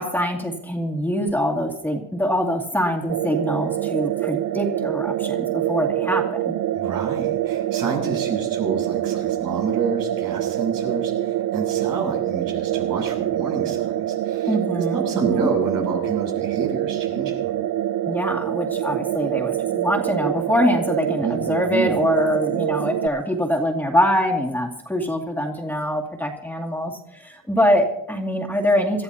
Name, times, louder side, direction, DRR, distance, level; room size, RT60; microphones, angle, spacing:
voice 1, 0.0-6.6 14.5-15.5 18.0-29.0, equal, 5° left, 0 dB, 2.3 m, -24 dB
sound 1, 3.1-23.1, right 12 dB, 60° right, 0.6 m, -25 dB
voice 2, 6.7-17.5 21.2-21.4 21.7-22.0, right 5 dB, 80° right, 0 dB, 7.1 m, -28 dB
27.0 x 14.0 x 2.8 m, 0.80 s
cardioid pair, 120°, 34 cm